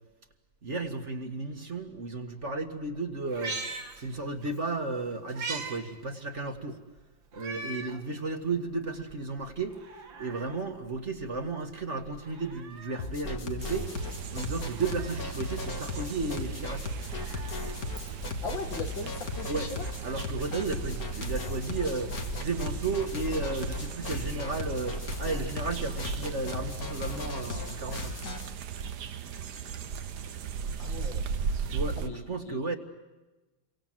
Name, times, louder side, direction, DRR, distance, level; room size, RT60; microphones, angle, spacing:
voice 1, 0.6-3.6 4.0-6.8 7.3-9.8 10.2-13.9 14.3-16.8 19.5-19.7 20.0-22.1 22.4-28.1 31.7-32.8, right 3 dB, 35° right, 2.1 m, -33 dB
Meow, 3.2-4.6 4.9-5.8 6.2-6.3 7.3-8.0 8.5-8.6 9.6-10.6 12.1-13.1 14.5-15.3 16.8-18.4 19.7-19.8, right 3 dB, 80° right, 2.7 m, -41 dB
sound 1, 13.0-28.5, left 3 dB, 50° left, 2.2 m, -37 dB
sound 2, 13.6-32.1, right 6 dB, 60° right, 1.6 m, -37 dB
voice 2, 18.4-19.9 30.8-31.3 32.0-32.6, left 4 dB, 75° left, 2.9 m, -38 dB
29.5 x 24.0 x 7.7 m
omnidirectional pair, 2.1 m